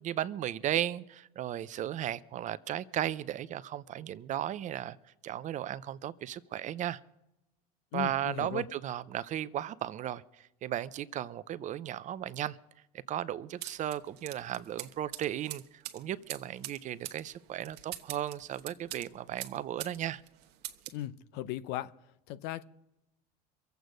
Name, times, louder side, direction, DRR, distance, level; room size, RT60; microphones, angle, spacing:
voice 1, 0.0-5.0 5.2-7.0 7.9-10.2 10.6-12.6 13.1-20.2, right 11 dB, 40° right, 0.6 m, -35 dB
voice 2, 7.9-8.7 20.9-21.9 22.3-22.6, left 13 dB, 65° left, 0.8 m, -37 dB
sound 1, 13.6-20.0 20.3-21.0, right 14 dB, 60° right, 1.2 m, -44 dB
23.5 x 8.1 x 5.1 m
supercardioid pair, 100°, 19 cm